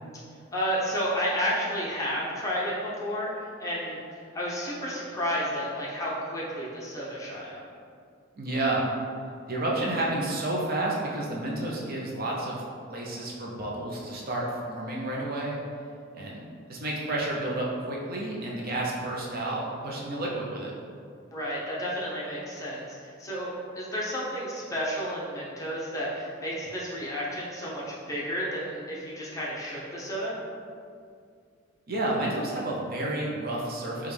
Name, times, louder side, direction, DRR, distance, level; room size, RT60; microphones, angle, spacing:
voice 1, 0.5-7.6 21.3-23.5 23.8-30.3, equal, 15° left, -7 dB, 0.8 m, -31 dB
voice 2, 8.4-8.8 9.5-12.6 12.9-15.6 16.1-16.4 16.7-20.7 31.9-34.1, right 2 dB, 45° right, -3 dB, 0.6 m, -30 dB
5.2 x 2.3 x 3.3 m, 2.3 s
head